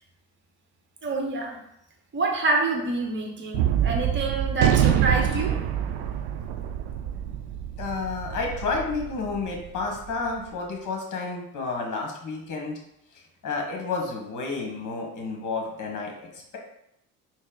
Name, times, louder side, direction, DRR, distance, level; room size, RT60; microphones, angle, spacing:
voice 1, 1.0-1.6 2.1-5.6, right 3 dB, 25° right, 2 dB, 0.9 m, -27 dB
Gunshot gunfire, 3.5-10.1, right 10 dB, 65° right, 0.5 m, -26 dB
voice 2, 7.8-12.8 13.1-16.6, left 4 dB, 40° left, 1 dB, 1.1 m, -31 dB
4.2 x 2.0 x 3.8 m, 0.79 s
hypercardioid pair, 55°, 45 cm